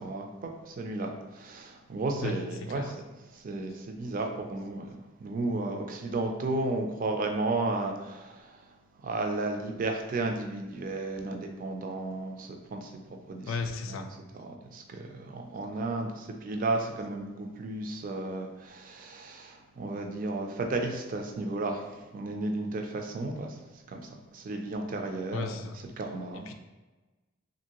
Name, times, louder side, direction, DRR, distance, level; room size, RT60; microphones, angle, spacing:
voice 1, 0.0-2.9 3.3-8.6 9.0-12.9 13.3-13.5 13.9-14.1 14.4-23.6 23.9-25.7 26.0-26.5, right 2 dB, 45° right, 3 dB, 0.4 m, -33 dB
voice 2, 2.2-2.9 13.5-14.1 25.3-25.8 26.3-26.5, left 4 dB, 70° left, 7 dB, 0.3 m, -35 dB
2.8 x 2.6 x 2.9 m, 1.2 s
head